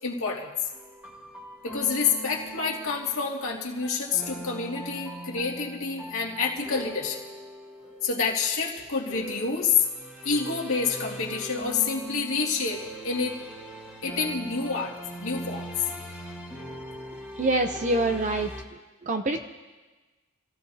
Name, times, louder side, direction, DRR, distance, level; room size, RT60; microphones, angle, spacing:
voice 1, 0.0-0.5 1.6-7.2 8.0-9.8 10.2-13.4 14.0-15.7, left 5 dB, 70° left, -2 dB, 2.2 m, -28 dB
sound 1, 0.7-18.6, right 1 dB, 5° right, 1.6 m, -41 dB
voice 2, 17.4-18.5 19.0-19.4, right 2 dB, 35° right, 5 dB, 0.6 m, -25 dB
28.0 x 15.5 x 2.8 m, 1.2 s
head